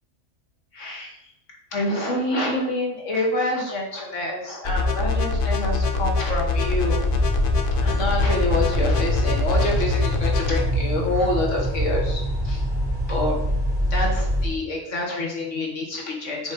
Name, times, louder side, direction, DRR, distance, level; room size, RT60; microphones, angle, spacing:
voice 1, 0.7-1.1 1.7-7.0 7.8-12.6 13.1-13.4 13.9-16.5, left 2 dB, 70° left, -1 dB, 1.9 m, -27 dB
sound 1, 4.6-10.6, left 3 dB, 50° left, 0.8 m, -24 dB
sound 2, 6.6-14.5, equal, 35° right, 2.4 m, -25 dB
7.1 x 3.1 x 5.2 m, 0.80 s
omnidirectional pair, 1.3 m